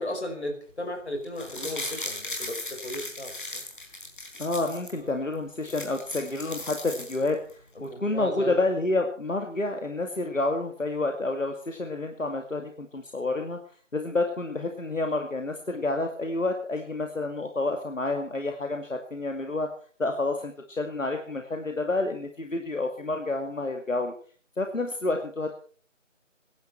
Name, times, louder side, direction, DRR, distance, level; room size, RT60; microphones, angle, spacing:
voice 1, 0.0-3.6 4.9-5.1 7.7-8.6, left 1 dB, 60° left, 4 dB, 4.9 m, -35 dB
sound 1, 1.2-4.9 5.3-5.4 5.6-7.5 7.8-7.9, left 2 dB, 40° left, 4.5 m, -37 dB
voice 2, 4.4-7.4 7.8-13.6 13.9-19.7 20.0-24.1 24.6-25.6, left 2 dB, 80° left, 4 dB, 2.3 m, -29 dB
22.0 x 11.5 x 4.6 m, 0.43 s
figure-of-eight pair, 170°, 38 cm